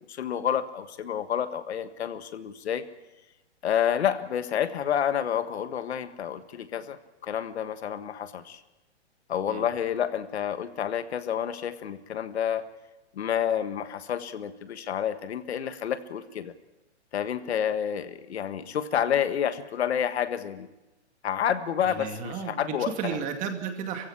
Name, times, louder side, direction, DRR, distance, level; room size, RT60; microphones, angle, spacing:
voice 1, 0.1-2.8 3.6-8.6 9.3-12.7 13.1-16.5 17.1-20.7 21.2-23.2, left 9 dB, 65° left, 11 dB, 1.6 m, -29 dB
voice 2, 21.8-24.1, right 7 dB, 20° right, 5 dB, 2.3 m, -33 dB
22.5 x 16.0 x 10.0 m, 1.0 s
hypercardioid pair, 155°, 34 cm